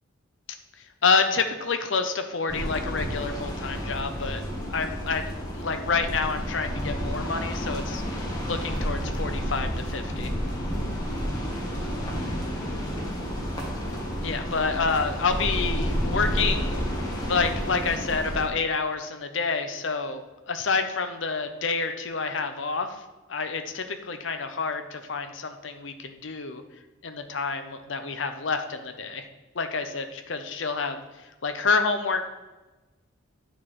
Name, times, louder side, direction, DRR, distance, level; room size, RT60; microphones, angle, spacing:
voice 1, 1.0-4.4 4.7-5.3 5.5-10.3 14.2-16.8 17.1-23.0 23.3-26.6 27.0-29.3 29.5-31.0 31.4-32.2, left 4 dB, 70° left, 7 dB, 0.8 m, -28 dB
sound 1, 2.5-18.5, equal, 20° left, 1.6 m, -30 dB
10.0 x 4.6 x 4.3 m, 1.1 s
head